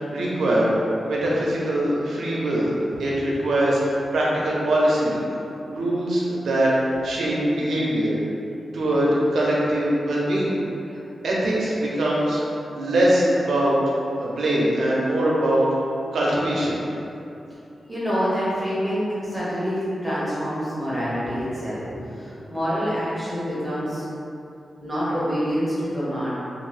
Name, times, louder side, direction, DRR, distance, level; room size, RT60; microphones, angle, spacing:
voice 1, 0.0-5.2 5.6-8.2 8.7-10.5 10.9-11.0 11.2-13.8 14.2-15.7 16.1-16.8, right 1 dB, 90° right, -5 dB, 0.6 m, -22 dB
voice 2, 17.9-24.0 24.8-26.3, equal, 5° right, -10 dB, 0.7 m, -26 dB
2.6 x 2.6 x 3.2 m, 2.7 s
wide cardioid pair, 160°, 0 cm